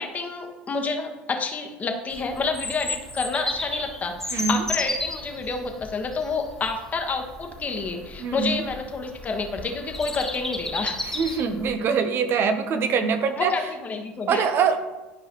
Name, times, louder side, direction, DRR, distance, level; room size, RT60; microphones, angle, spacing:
voice 1, 0.0-11.0 13.4-14.4, left 4 dB, 30° left, 3 dB, 1.4 m, -29 dB
Bird vocalization bird call bird song, 2.1-11.7, left 2 dB, 10° left, 1.7 m, -34 dB
voice 2, 4.3-4.7 8.2-8.6 11.0-13.5 14.3-14.8, right 6 dB, 50° right, 8 dB, 1.0 m, -23 dB
12.0 x 4.8 x 3.1 m, 1.1 s
hypercardioid pair, 80°, 5 cm